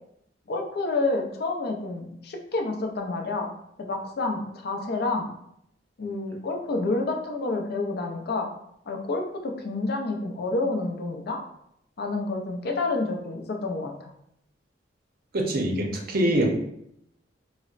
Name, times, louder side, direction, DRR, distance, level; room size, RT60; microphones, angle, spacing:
voice 1, 0.5-3.5 3.8-5.3 6.0-8.5 8.9-11.4 12.0-14.1, left 3 dB, 60° left, 3 dB, 0.5 m, -29 dB
voice 2, 15.3-16.4, right 1 dB, 55° right, 0 dB, 0.6 m, -24 dB
4.0 x 2.0 x 2.4 m, 0.75 s
head